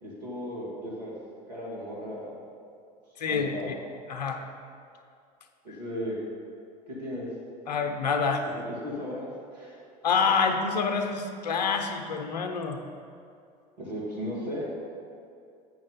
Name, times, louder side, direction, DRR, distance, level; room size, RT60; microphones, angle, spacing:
voice 1, 0.0-1.1 1.5-2.3 3.3-3.7 5.6-6.2 6.9-7.3 8.8-9.3 9.5-9.8 13.8-14.6, equal, 85° right, -5 dB, 2.2 m, -35 dB
voice 2, 3.2-3.7 4.1-4.4 7.7-8.5 10.0-12.8, left 5 dB, 85° left, 5 dB, 0.7 m, -27 dB
7.4 x 6.3 x 5.6 m, 2.4 s
hypercardioid pair, 70°, 20 cm